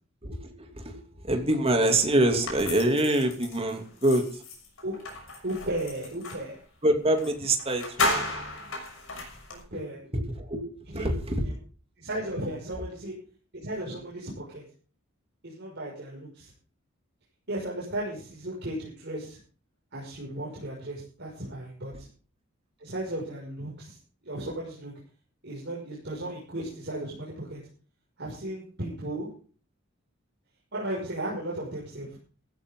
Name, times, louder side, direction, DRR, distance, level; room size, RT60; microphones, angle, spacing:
voice 1, 0.2-4.4 6.8-8.3 9.7-9.8 10.1-11.6, right 1 dB, 30° right, 4 dB, 2.8 m, -26 dB
sound 1, 2.4-6.5 7.2-7.3 7.6-9.6, left 2 dB, 75° left, 6.3 m, -33 dB
voice 2, 5.4-6.5 9.5-10.0 10.9-11.1 12.0-13.1 13.5-14.6 15.4-16.5 17.5-19.4 19.9-22.1 22.8-24.0 24.2-24.9 25.4-27.6 28.2-29.3 30.7-32.2, right 1 dB, 55° right, -4 dB, 6.2 m, -35 dB
16.0 x 14.5 x 3.9 m, 0.40 s
head